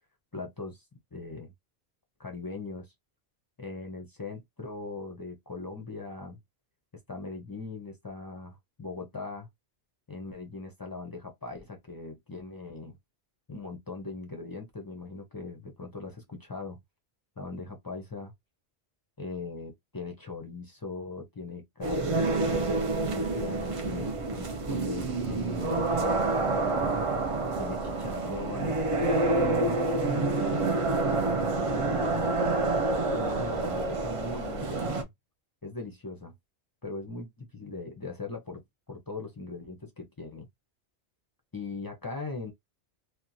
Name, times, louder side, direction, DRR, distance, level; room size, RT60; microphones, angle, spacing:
voice 1, 0.3-0.8 1.1-1.5 2.2-2.9 3.6-6.4 7.1-9.5 10.1-13.0 13.5-16.8 17.4-18.3 19.2-26.9 27.6-28.8 29.3-30.8 31.6-32.5 33.1-35.1 35.6-36.3 36.8-38.6 38.9-40.5 41.5-42.5, left 3 dB, 30° left, 0.4 m, -40 dB
sound 1, 21.8-35.0, right 3 dB, 60° right, 0.3 m, -28 dB
2.8 x 2.1 x 2.6 m
omnidirectional pair, 1.2 m